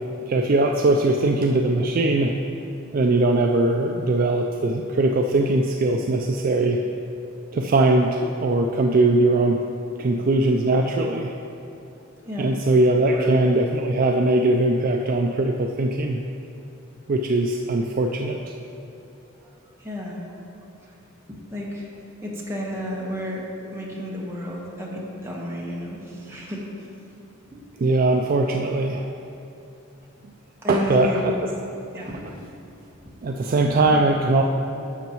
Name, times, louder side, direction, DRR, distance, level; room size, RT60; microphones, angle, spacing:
voice 1, 0.3-2.3 2.9-6.8 7.5-9.6 10.0-11.3 12.4-16.2 17.1-18.4 27.8-29.1 30.7-31.3 32.0-32.1 33.2-34.4, right 2 dB, 45° right, 2 dB, 0.3 m, -20 dB
voice 2, 12.2-12.6 13.1-13.3 19.4-19.5 19.8-20.2 21.3-21.9 22.2-26.6 30.6-31.4 31.9-32.2 33.5-34.0, equal, 15° right, -4 dB, 1.2 m, -31 dB
11.0 x 6.9 x 3.0 m, 2.8 s
head